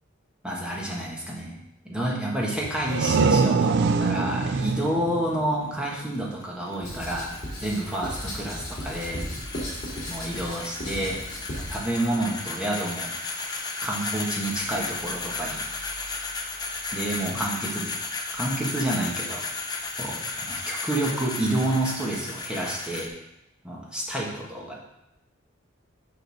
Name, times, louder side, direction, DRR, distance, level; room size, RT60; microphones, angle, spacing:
voice 1, 0.4-1.6 1.8-7.3 7.6-9.2 10.0-11.2 11.7-13.1 13.8-15.6 16.9-17.9 18.3-19.4 20.0-23.1 23.6-24.8, right 1 dB, 5° right, -4 dB, 1.4 m, -29 dB
sound 1, 2.6-6.2, right 4 dB, 55° right, 0.4 m, -24 dB
sound 2, 5.5-23.1, left 3 dB, 20° left, 0.6 m, -35 dB
Writing, 6.8-11.8, equal, 40° left, 2.5 m, -36 dB
6.6 x 4.0 x 6.3 m, 0.85 s
head